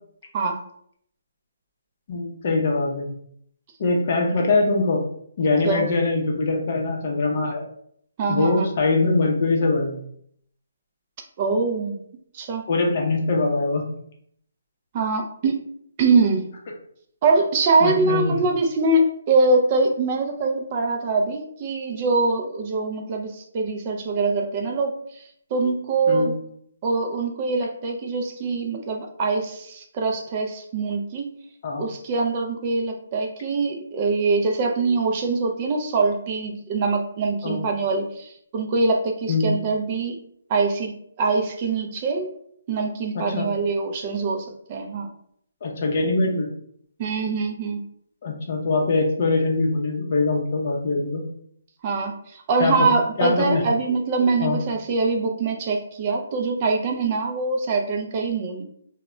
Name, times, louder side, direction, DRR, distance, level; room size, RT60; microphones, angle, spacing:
voice 1, 2.1-3.1 3.8-5.0 5.4-7.6 8.3-10.0 12.7-13.8 17.8-18.4 26.1-26.3 31.6-31.9 37.4-37.6 39.3-39.5 43.1-43.5 45.6-46.5 48.2-51.2 52.6-53.6 54.4-54.6, left 3 dB, 35° left, 0 dB, 0.6 m, -22 dB
voice 2, 8.2-8.7 11.4-12.0 12.3-12.6 14.9-15.6 16.0-16.5 17.2-24.9 25.5-26.4 26.8-31.3 31.8-40.2 40.5-42.3 42.7-45.1 47.0-47.8 51.8-58.6, right 3 dB, 25° right, 3 dB, 0.3 m, -23 dB
2.1 x 2.1 x 3.6 m, 0.67 s
hypercardioid pair, 170°, 0 cm